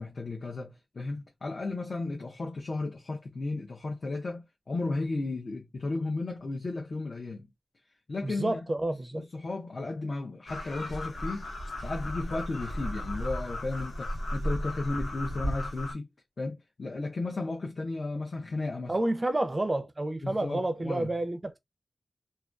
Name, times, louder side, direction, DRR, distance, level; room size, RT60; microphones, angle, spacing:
voice 1, 0.0-7.5 8.1-8.7 9.1-11.5 11.8-16.1 16.4-19.0 20.2-21.1, left 3 dB, 50° left, 0.5 m, -34 dB
voice 2, 8.2-9.3 18.9-21.6, right 1 dB, 25° right, 0.4 m, -29 dB
sound 1, 10.5-15.9, equal, 75° left, 0.9 m, -35 dB
2.3 x 2.2 x 2.4 m
wide cardioid pair, 105°, 0 cm